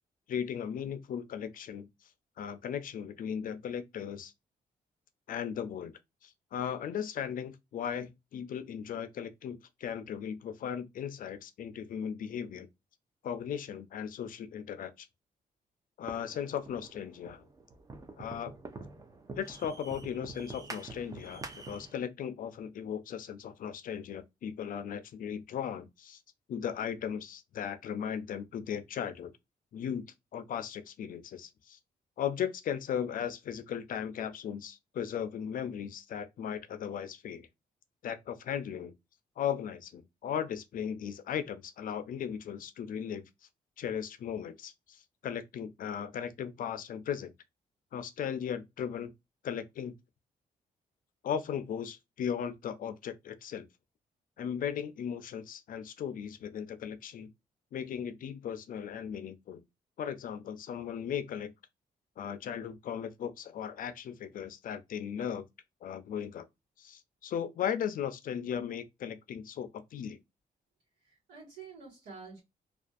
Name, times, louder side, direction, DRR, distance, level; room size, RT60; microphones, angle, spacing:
voice 1, 0.3-1.9 2.4-4.3 5.3-5.9 6.2-12.7 13.2-15.1 16.0-17.4 18.2-18.5 19.4-26.2 26.5-29.3 29.7-30.0 30.3-31.8 32.2-37.5 38.0-38.9 39.4-43.2 43.8-47.3 47.9-49.1 49.4-49.9 51.2-53.7 54.4-57.3 57.7-59.6 60.0-61.5 62.2-65.4 65.8-66.5 66.8-70.2, left 8 dB, 60° left, 0.4 m, -37 dB
sound 1, 16.1-22.0, right 3 dB, 20° right, 0.5 m, -46 dB
voice 2, 71.0-72.4, right 5 dB, 90° right, 1.3 m, -48 dB
2.5 x 2.4 x 2.3 m
cardioid pair, 100°, 16 cm